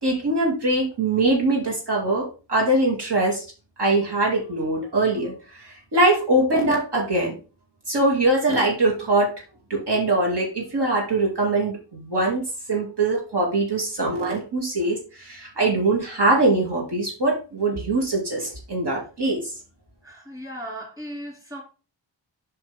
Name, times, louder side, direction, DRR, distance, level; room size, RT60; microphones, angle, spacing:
voice 1, 0.0-3.4 3.8-7.4 7.9-9.3 9.7-19.5, right 2 dB, 60° right, 2.5 m, -22 dB
voice 2, 20.0-21.6, equal, 10° right, 2.8 m, -36 dB
7.9 x 5.8 x 3.5 m
wide cardioid pair, 120°, 46 cm